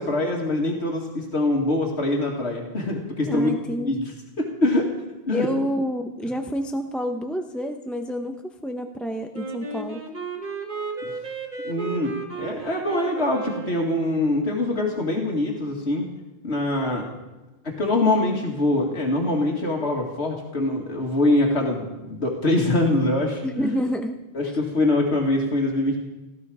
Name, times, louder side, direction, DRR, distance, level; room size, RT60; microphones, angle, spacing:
voice 1, 0.0-4.1 4.4-4.9 5.3-5.5 11.6-16.1 16.4-17.1 17.6-23.7 24.3-26.0, left 2 dB, 70° left, 0 dB, 2.3 m, -24 dB
voice 2, 3.3-4.0 5.3-10.0 23.4-24.2, equal, ahead, 4 dB, 0.7 m, -28 dB
Wind instrument woodwind instrument, 9.3-14.1, right 3 dB, 40° right, 1.8 m, -34 dB
18.5 x 15.0 x 4.9 m, 1.1 s
omnidirectional pair, 1.1 m